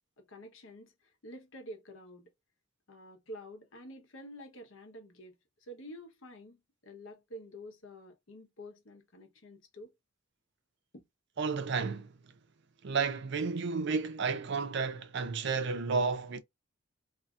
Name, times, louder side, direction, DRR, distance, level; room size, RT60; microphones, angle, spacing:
voice 1, 0.2-2.3 2.9-5.3 5.6-9.9 10.9-11.0, equal, 70° left, 0.9 m, -49 dB
voice 2, 11.4-12.1 12.8-16.4, right 5 dB, 55° right, 0.4 m, -32 dB
2.6 x 2.4 x 2.3 m
head